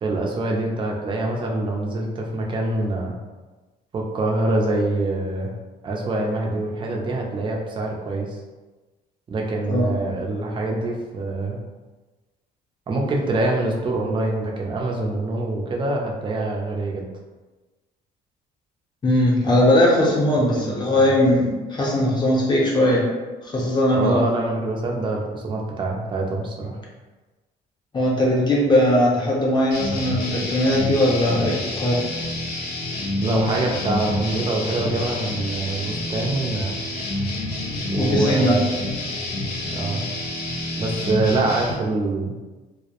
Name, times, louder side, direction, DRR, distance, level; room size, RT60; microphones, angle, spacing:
voice 1, 0.0-3.1 3.9-5.5 5.8-8.4 9.3-11.6 12.9-17.0 20.4-21.1 23.9-26.8 33.2-36.7 37.9-38.8 39.7-40.0 40.8-42.3, right 2 dB, 30° right, -1 dB, 0.5 m, -25 dB
voice 2, 19.0-23.1 23.4-24.3 27.9-32.1 38.0-38.6, left 1 dB, 25° left, -3 dB, 0.7 m, -19 dB
sound 1, 29.7-41.7, left 2 dB, 65° left, 0.7 m, -28 dB
2.1 x 2.0 x 2.9 m, 1.2 s
cardioid pair, 110°, 17 cm